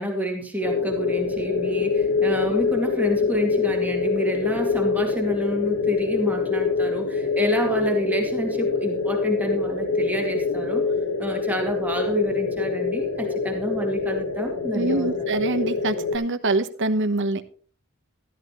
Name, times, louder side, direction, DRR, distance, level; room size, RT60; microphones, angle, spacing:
voice 1, 0.0-10.8 11.2-15.3, equal, 10° right, 1 dB, 2.3 m, -28 dB
sound 1, 0.6-16.2, left 4 dB, 80° left, 1.6 m, -25 dB
voice 2, 14.7-17.4, right 2 dB, 60° right, 10 dB, 1.2 m, -24 dB
13.5 x 13.5 x 3.1 m, 0.41 s
head